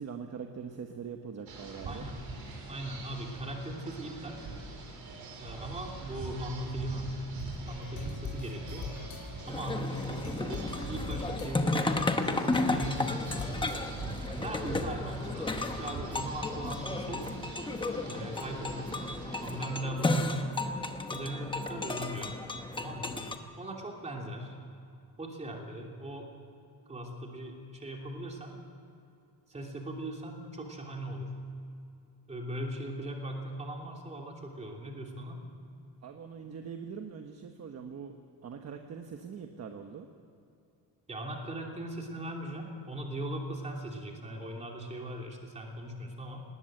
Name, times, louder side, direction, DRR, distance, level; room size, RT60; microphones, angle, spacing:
voice 1, 0.0-2.0 36.0-38.1 38.4-40.1, right 6 dB, 35° right, 5 dB, 1.1 m, -42 dB
sound 1, 1.5-19.7, right 3 dB, 55° right, 4.9 m, -43 dB
voice 2, 1.9-2.2 2.7-4.4 5.4-7.1 7.7-8.9 9.5-13.6 14.3-17.3 18.0-18.9 19.4-20.4 21.1-22.4 22.8-23.2 23.6-24.5 25.2-26.3 26.9-28.6 29.5-31.3 32.3-35.4 41.1-46.4, right 1 dB, 15° right, 0 dB, 3.0 m, -39 dB
sound 2, 7.4-14.2, left 4 dB, 50° left, 3.9 m, -43 dB
sound 3, 9.5-23.4, left 2 dB, 10° left, 1.0 m, -33 dB
19.5 x 18.5 x 7.6 m, 2.6 s
cardioid pair, 165°, 43 cm